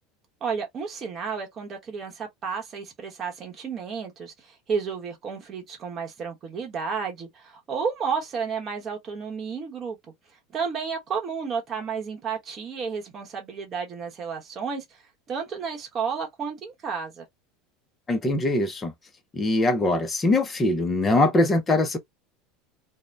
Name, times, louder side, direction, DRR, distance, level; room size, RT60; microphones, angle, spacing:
voice 1, 0.4-10.0 10.5-15.0 15.3-17.2, right 6 dB, 25° right, 0.9 m, -32 dB
voice 2, 18.1-18.9 19.3-22.0, left 2 dB, 15° left, 0.5 m, -22 dB
2.6 x 2.1 x 3.1 m
cardioid pair, 170°, 0 cm